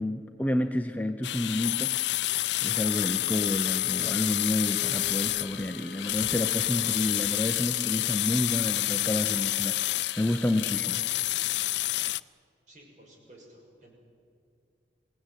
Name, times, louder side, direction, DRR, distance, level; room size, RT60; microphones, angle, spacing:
voice 1, 0.0-1.9 2.3-11.0, left 1 dB, 10° left, 6 dB, 0.7 m, -30 dB
sound 1, 1.2-12.2, left 16 dB, 75° left, 0.5 m, -29 dB
Wind instrument woodwind instrument, 2.8-7.3, left 1 dB, 45° left, 0.9 m, -46 dB
voice 2, 12.7-13.9, right 1 dB, 45° right, -1 dB, 6.5 m, -53 dB
26.5 x 17.0 x 9.2 m, 2.4 s
head